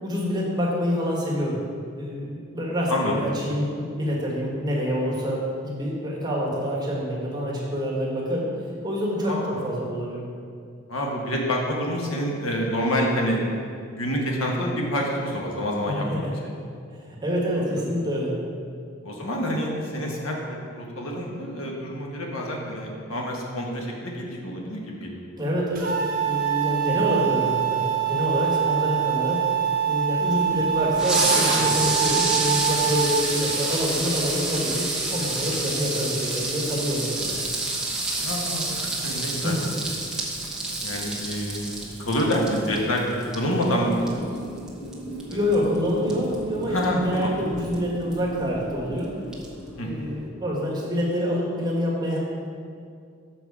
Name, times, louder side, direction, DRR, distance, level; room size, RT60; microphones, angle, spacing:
voice 1, 0.0-1.6 2.0-8.5 8.8-10.3 15.8-16.3 17.1-18.4 25.4-29.4 29.8-37.4 39.4-39.6 45.3-49.1 49.8-52.2, equal, 20° right, -4 dB, 1.4 m, -27 dB
voice 2, 9.2-9.7 10.9-13.4 13.9-16.5 17.7-17.8 19.0-25.4 28.7-29.0 31.6-31.7 38.2-39.5 40.4-44.5 45.3-45.4 46.7-47.3 49.8-50.0, equal, 85° left, -1 dB, 1.2 m, -28 dB
sound 1, 25.7-33.4, right 9 dB, 45° right, 1.2 m, -25 dB
sound 2, 30.5-50.3, right 2 dB, 5° right, 1.0 m, -29 dB
sound 3, 42.9-50.2, equal, 30° left, 1.2 m, -39 dB
7.0 x 5.8 x 4.7 m, 2.3 s
head